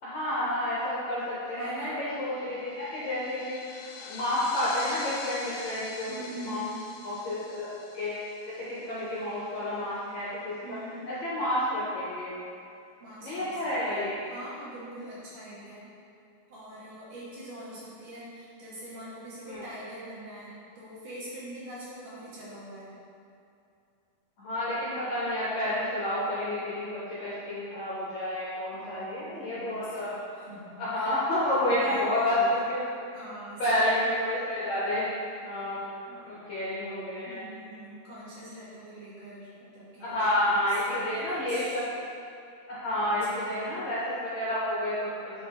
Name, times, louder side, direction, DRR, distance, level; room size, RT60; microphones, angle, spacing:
voice 1, 0.0-6.7 7.0-8.2 8.5-10.7 11.1-12.3 13.2-14.2 19.5-19.6 24.4-30.1 30.8-32.8 33.6-35.8 36.2-37.4 40.0-41.9 42.7-45.5, left 1 dB, 65° left, -10 dB, 1.9 m, -30 dB
voice 2, 1.6-2.0 6.1-6.8 10.6-11.0 13.0-13.5 13.9-15.9 16.5-22.9 28.7-30.1 30.3-31.2 31.6-32.5 33.1-33.8 36.1-36.5 37.3-41.8 43.0-43.7, right 1 dB, 60° right, -10 dB, 3.0 m, -43 dB
sound 1, 2.4-9.2, left 4 dB, 90° left, 1.9 m, -44 dB
10.0 x 3.7 x 3.7 m, 2.5 s
omnidirectional pair, 4.5 m